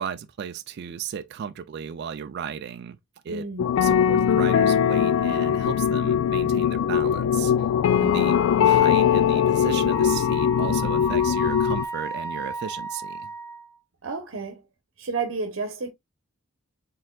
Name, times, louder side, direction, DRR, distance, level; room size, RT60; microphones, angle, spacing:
voice 1, 0.0-3.0 3.2-3.5 3.8-7.5 8.0-13.3, right 7 dB, 55° right, 0.3 m, -35 dB
voice 2, 3.3-3.7 8.6-8.7 14.0-14.6 15.0-15.9, right 4 dB, 75° right, 0.8 m, -31 dB
sound 1, 3.6-11.8, left 8 dB, 80° left, 0.3 m, -21 dB
Wind instrument woodwind instrument, 9.9-13.8, right 2 dB, 15° left, 0.6 m, -34 dB
4.4 x 3.7 x 2.2 m
head